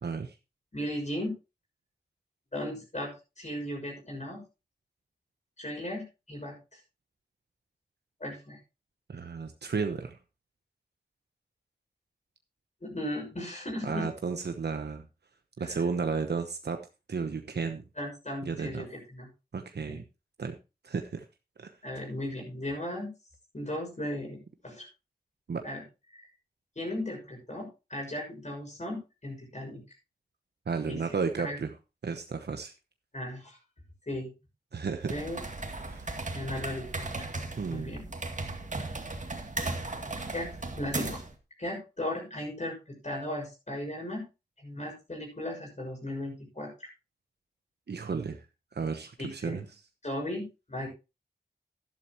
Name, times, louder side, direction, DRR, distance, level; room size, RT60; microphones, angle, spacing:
voice 1, 0.0-0.3 9.1-10.2 13.8-15.0 15.6-16.8 17.1-17.8 18.5-18.9 19.5-20.0 20.4-20.5 20.8-21.2 21.6-21.7 25.5-25.6 30.7-31.7 32.0-32.7 34.7-35.1 35.8-36.1 37.6-38.0 47.9-48.4 48.7-49.6, right 5 dB, 85° right, 6 dB, 1.0 m, -33 dB
voice 2, 0.7-1.3 2.5-3.1 3.4-4.4 5.6-6.8 8.2-8.6 12.8-14.1 15.6-15.8 18.0-19.3 19.9-20.0 21.8-23.1 23.5-24.4 24.6-24.9 25.6-25.8 26.1-26.2 26.8-29.8 30.9-31.0 31.4-31.6 33.1-33.6 34.1-34.3 35.1-35.4 36.3-36.9 37.1-37.3 37.7-38.0 40.3-40.5 40.8-41.2 41.6-44.2 44.6-46.9 49.2-49.6 50.0-50.9, left 1 dB, 45° left, -1 dB, 6.4 m, -36 dB
sound 1, 35.0-41.3, right 2 dB, 50° right, 2.1 m, -36 dB
12.0 x 11.5 x 3.0 m, 0.28 s
wide cardioid pair, 65°, 17 cm